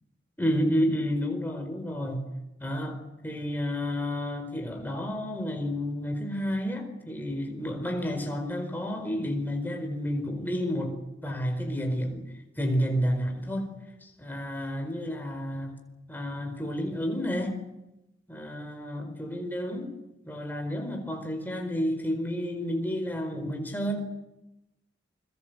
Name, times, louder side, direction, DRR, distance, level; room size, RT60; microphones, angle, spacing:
voice 1, 0.4-2.3 2.6-11.0 11.2-15.7 16.1-17.6 18.3-19.9 20.2-24.0, equal, 10° left, 4.7 m, -30 dB
28.5 x 22.5 x 8.1 m
head